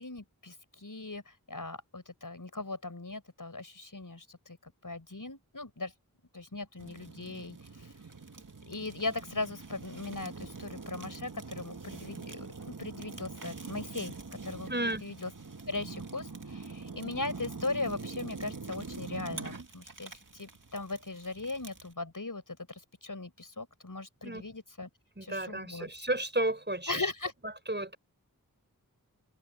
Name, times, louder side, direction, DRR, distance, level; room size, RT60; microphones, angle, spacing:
voice 1, 0.0-5.9 6.3-7.9 8.7-14.1 14.4-15.3 15.7-24.9 25.2-25.9 26.9-27.3, left 3 dB, 65° left, 6.5 m, -39 dB
Fire, 6.8-21.9, right 4 dB, 60° right, 2.0 m, -44 dB
voice 2, 14.7-15.0 24.2-24.4 25.2-27.0 27.7-27.9, right 1 dB, 30° right, 5.4 m, -32 dB
wide cardioid pair, 45°, 35 cm